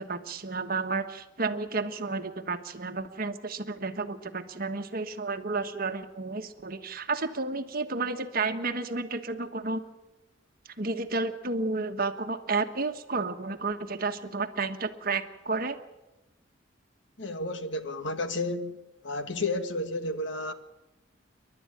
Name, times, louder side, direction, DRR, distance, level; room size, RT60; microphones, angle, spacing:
voice 1, 0.0-9.8 10.8-15.8, right 3 dB, 50° right, 1.4 m, -31 dB
voice 2, 17.2-18.8 19.0-20.5, left 2 dB, 65° left, 1.6 m, -31 dB
29.0 x 12.0 x 8.9 m
head